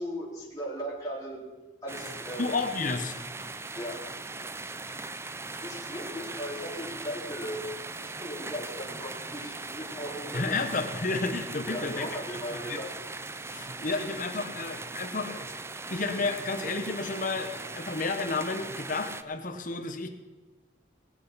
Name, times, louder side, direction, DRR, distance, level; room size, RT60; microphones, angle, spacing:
voice 1, 0.0-1.4 1.8-2.5 3.7-4.1 5.6-10.6 11.6-12.9, equal, 20° left, -6 dB, 3.1 m, -37 dB
sound 1, 1.9-19.2, right 3 dB, 15° right, 0.5 m, -39 dB
voice 2, 2.4-3.2 10.3-12.1 12.7-12.8 13.5-15.6 15.9-20.1, left 3 dB, 50° left, 6 dB, 1.2 m, -31 dB
19.0 x 8.3 x 5.8 m, 1.2 s
head